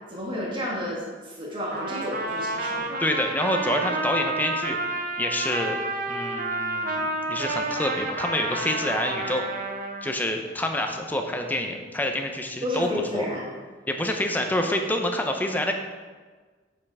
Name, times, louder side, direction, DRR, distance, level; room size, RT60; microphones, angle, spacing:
voice 1, 0.1-2.9 12.6-13.4, left 1 dB, 30° right, -5 dB, 1.7 m, -31 dB
Trumpet, 1.7-10.1, right 2 dB, 50° right, 0.8 m, -30 dB
voice 2, 3.0-4.8 5.2-5.8 6.1-9.4 10.0-12.9 13.1-13.3 13.9-15.7, left 1 dB, 10° left, 4 dB, 0.7 m, -27 dB
9.1 x 5.5 x 3.5 m, 1.4 s
head